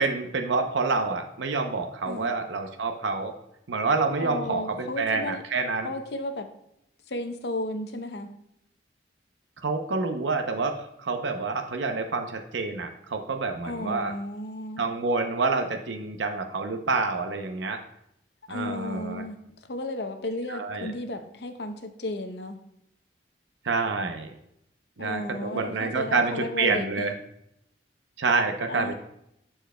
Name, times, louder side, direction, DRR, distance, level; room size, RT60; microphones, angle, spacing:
voice 1, 0.0-3.4 3.7-5.9 9.6-14.1 14.8-17.8 18.5-19.2 20.5-20.9 23.6-24.3 25.0-27.1 28.2-28.9, right 4 dB, 85° right, 5 dB, 0.7 m, -27 dB
voice 2, 4.2-5.4 5.8-6.5 7.1-8.3 13.6-14.8 18.5-19.4 19.7-22.6 25.0-27.1 28.7-28.9, left 1 dB, 65° left, 7 dB, 0.7 m, -34 dB
12.0 x 4.5 x 2.2 m, 0.78 s
head